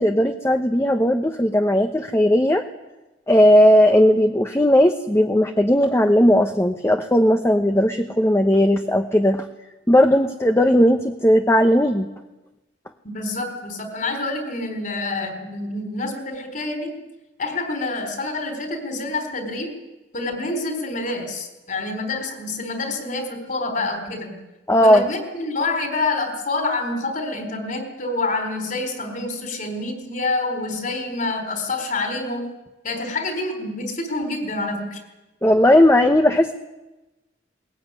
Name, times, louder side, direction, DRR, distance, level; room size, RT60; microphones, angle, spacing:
voice 1, 0.0-2.6 3.3-9.4 9.9-12.1 24.7-25.0 35.4-36.5, equal, 15° left, 6 dB, 0.9 m, -17 dB
voice 2, 13.0-17.0 17.4-19.8 20.1-24.4 24.8-32.5 32.8-35.0, left 2 dB, 45° left, 6 dB, 4.1 m, -27 dB
21.5 x 19.5 x 9.7 m, 1.1 s
head